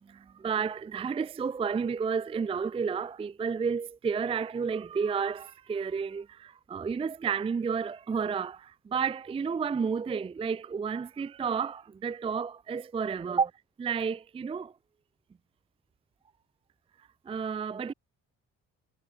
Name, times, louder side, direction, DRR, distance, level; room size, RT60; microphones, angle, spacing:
voice 1, 0.1-13.5 13.8-14.7 17.3-17.9, right 6 dB, 20° right, 0.4 m, -31 dB
cardioid pair, 90°, 30 cm